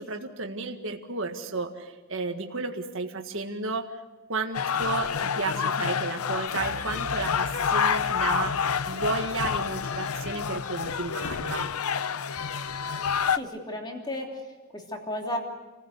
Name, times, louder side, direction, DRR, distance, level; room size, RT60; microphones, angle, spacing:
voice 1, 0.0-3.9 4.3-11.7, right 3 dB, 60° right, 4 dB, 1.7 m, -33 dB
sound 1, 4.5-13.4, left 6 dB, 85° left, 0.7 m, -28 dB
sound 2, 6.5-11.4 11.9-12.0, right 1 dB, 75° right, 2.7 m, -46 dB
voice 2, 13.3-14.4 14.7-15.4, left 1 dB, 20° left, 1 dB, 3.1 m, -33 dB
28.5 x 16.0 x 8.2 m, 1.3 s
head